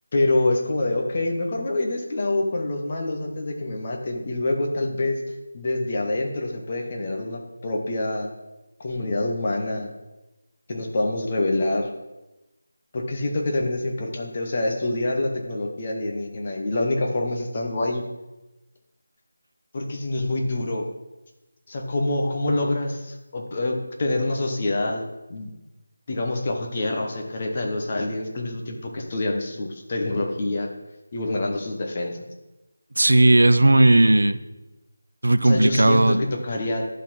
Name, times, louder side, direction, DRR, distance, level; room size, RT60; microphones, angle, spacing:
voice 1, 0.1-5.2 5.5-8.3 8.8-9.9 10.7-11.9 12.9-18.0 19.7-20.9 21.7-25.0 25.3-25.5 26.1-30.7 31.1-32.2 35.4-36.9, left 2 dB, 20° left, 2 dB, 0.8 m, -26 dB
voice 2, 33.0-34.4 35.2-36.2, right 2 dB, 75° right, 12 dB, 0.5 m, -16 dB
11.0 x 3.9 x 5.9 m, 1.0 s
figure-of-eight pair, 180°, 0 cm